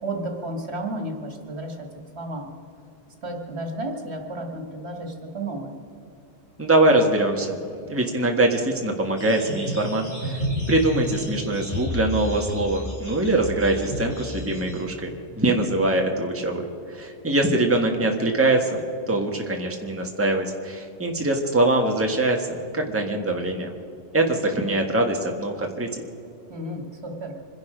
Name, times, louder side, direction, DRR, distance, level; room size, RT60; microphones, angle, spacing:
voice 1, 0.0-1.9 2.2-2.5 3.2-5.8 26.5-27.4, right 1 dB, 65° right, 3 dB, 2.3 m, -32 dB
voice 2, 6.6-7.6 7.8-10.4 10.7-15.1 15.4-18.8 19.1-23.7 24.1-25.9, right 2 dB, 10° right, 2 dB, 1.5 m, -23 dB
sound 1, 9.2-14.8, equal, 30° left, 2.7 m, -31 dB
25.5 x 11.0 x 5.0 m, 2.6 s
omnidirectional pair, 1.2 m